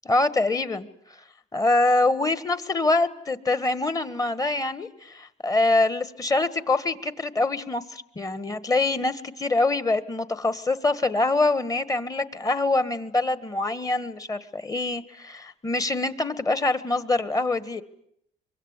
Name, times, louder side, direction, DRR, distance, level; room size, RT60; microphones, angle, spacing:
voice 1, 0.1-0.9 1.5-17.8, left 2 dB, 20° left, 14 dB, 1.8 m, -24 dB
24.5 x 23.0 x 9.9 m, 0.72 s
cardioid pair, 110°, 17 cm